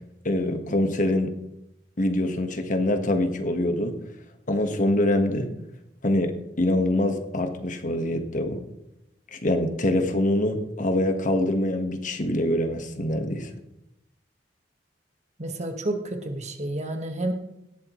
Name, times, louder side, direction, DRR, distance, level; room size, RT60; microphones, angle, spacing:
voice 1, 0.2-1.3 2.0-3.9 4.5-5.5 6.0-8.6 9.3-13.5, left 1 dB, 45° left, 6 dB, 1.4 m, -24 dB
voice 2, 15.4-17.3, right 1 dB, 40° right, 5 dB, 1.5 m, -30 dB
18.0 x 12.5 x 3.1 m, 0.85 s
head